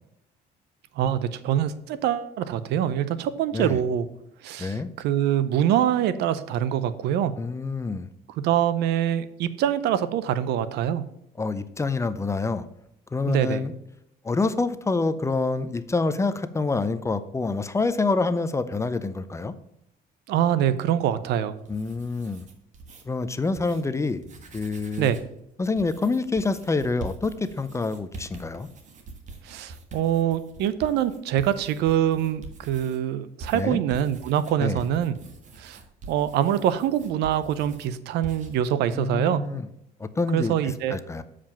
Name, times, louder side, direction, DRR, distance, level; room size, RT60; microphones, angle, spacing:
voice 1, 1.0-4.1 4.4-7.3 8.3-11.0 13.3-13.6 20.3-21.5 25.0-25.2 29.4-35.1 35.6-35.8 36.1-39.4 40.3-41.0, right 10 dB, 80° right, 14 dB, 0.6 m, -24 dB
voice 2, 7.4-8.1 11.4-12.6 13.1-13.7 14.2-19.5 21.7-22.5 23.1-24.2 24.5-25.1 25.6-28.7 33.5-33.8 34.6-34.8 39.0-39.7 40.0-41.2, left 3 dB, 15° left, 12 dB, 0.5 m, -27 dB
sound 1, 21.7-23.0 23.5-23.8 24.2-25.3 25.8-33.0 33.4-37.9 38.2-38.6, right 3 dB, 45° right, 1.5 m, -44 dB
7.4 x 5.0 x 5.8 m, 0.78 s
cardioid pair, 110°, 17 cm